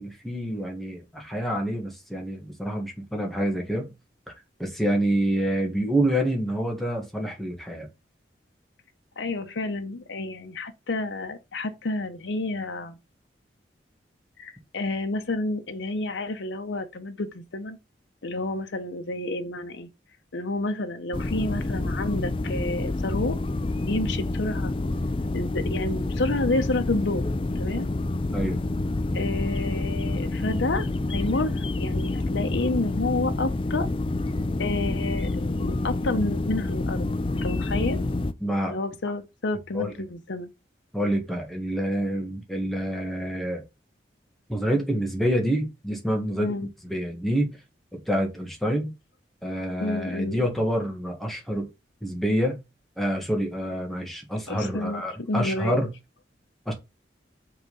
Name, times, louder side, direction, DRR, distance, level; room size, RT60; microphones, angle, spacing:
voice 1, 0.0-3.9 4.3-4.4 4.6-7.9 28.3-28.6 38.4-38.8 39.7-39.9 40.9-43.6 44.5-46.5 46.8-47.6 48.1-48.9 49.4-51.7 52.0-52.6 53.0-55.9 56.6-56.7, equal, ahead, 1.7 m, -27 dB
voice 2, 9.2-13.0 14.4-17.8 18.2-19.9 20.3-23.4 23.9-24.7 25.3-27.2 27.5-27.9 29.1-31.5 31.8-33.9 34.6-37.1 37.4-38.0 38.7-40.5 46.4-46.7 49.8-50.4 54.5-55.8, left 2 dB, 80° left, 0.8 m, -29 dB
sound 1, 21.1-38.3, left 2 dB, 30° left, 0.4 m, -28 dB
5.9 x 3.8 x 5.4 m
head